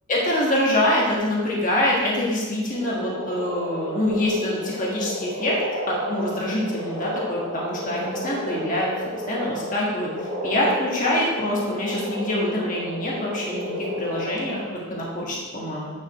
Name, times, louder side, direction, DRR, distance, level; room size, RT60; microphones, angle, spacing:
voice 1, 0.1-5.6 5.9-8.9 9.3-13.7 14.0-15.9, left 1 dB, 40° left, -4 dB, 1.6 m, -25 dB
sound 1, 2.7-15.1, equal, 55° right, 1.7 m, -32 dB
10.0 x 5.5 x 3.1 m, 1.4 s
head